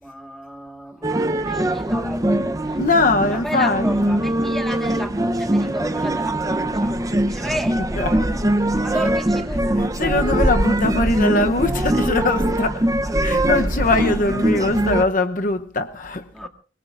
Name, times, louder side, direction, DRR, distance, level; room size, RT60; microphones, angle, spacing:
voice 1, 0.0-7.0 7.3-8.5 8.8-9.8 12.2-12.7 13.0-13.9 16.3-16.5, equal, ahead, 1.6 m, -34 dB
sound 1, 1.0-15.0, right 1 dB, 20° right, 0.8 m, -22 dB
voice 2, 2.8-3.9 7.8-8.3 8.9-9.1 9.5-12.9 13.2-16.5, left 2 dB, 50° left, 0.8 m, -22 dB
24.5 x 21.0 x 2.5 m
head